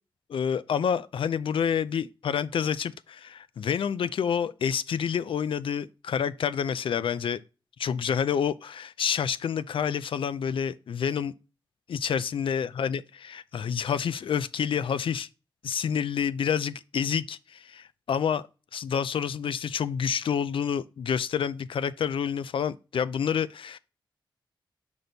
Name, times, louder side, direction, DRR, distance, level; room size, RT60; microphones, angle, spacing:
voice 1, 0.3-7.4 7.8-11.3 11.9-15.3 15.6-18.5 18.7-23.8, left 7 dB, 75° left, 0.4 m, -28 dB
6.1 x 5.2 x 4.0 m
wide cardioid pair, 90°, 9 cm